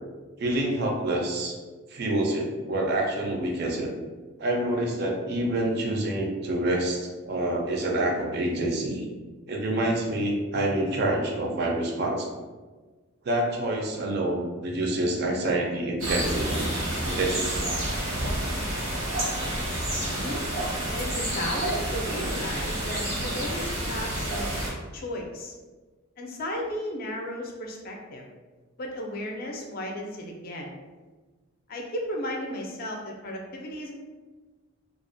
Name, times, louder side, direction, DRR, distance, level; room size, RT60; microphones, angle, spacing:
voice 1, 0.4-1.6 1.9-3.9 4.4-9.1 9.5-12.3 13.2-16.7 17.0-17.6, right 1 dB, 50° right, 0 dB, 0.4 m, -27 dB
sound 1, 16.0-24.7, right 1 dB, 90° right, 0.8 m, -29 dB
voice 2, 20.0-20.4 20.9-24.6 24.9-25.5 26.2-28.2 28.8-30.7 31.7-33.9, left 1 dB, 45° left, 1 dB, 0.4 m, -34 dB
2.3 x 2.0 x 2.5 m, 1.3 s
head